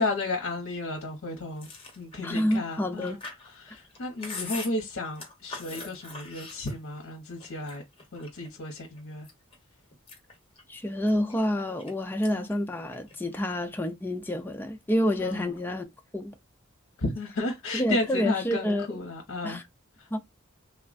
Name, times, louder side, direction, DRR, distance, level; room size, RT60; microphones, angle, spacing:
voice 1, 0.0-1.7 2.0-3.2 3.4-7.8 8.1-9.3 12.3-12.5 15.2-15.5 17.0-19.6 20.0-20.2, left 2 dB, 60° left, 0.7 m, -33 dB
Chewing mastication, 1.6-7.1 7.4-8.5 9.0-9.6 9.9-11.9 12.2-12.6 12.8-13.7, left 3 dB, 25° left, 1.0 m, -42 dB
voice 2, 2.2-3.2 10.7-16.3 17.7-18.9 19.4-19.6 20.1-20.2, left 1 dB, 10° left, 0.3 m, -28 dB
3.2 x 2.1 x 2.3 m
head